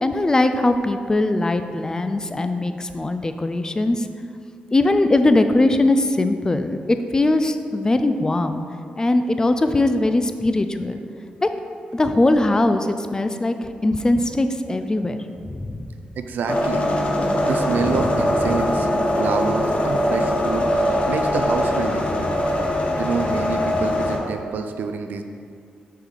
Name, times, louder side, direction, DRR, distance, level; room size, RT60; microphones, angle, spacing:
voice 1, 0.0-4.1 4.7-6.8 7.1-8.6 9.0-11.0 11.4-11.5 11.9-15.9 17.9-18.1, left 2 dB, 20° left, 8 dB, 0.4 m, -20 dB
voice 2, 16.1-16.9 17.4-18.9 19.2-22.4 23.0-25.2, right 5 dB, 80° right, 6 dB, 0.4 m, -27 dB
sound 1, 16.5-24.2, left 1 dB, 40° left, 0.9 m, -22 dB
6.3 x 4.8 x 4.0 m, 2.3 s
cardioid pair, 75°, 3 cm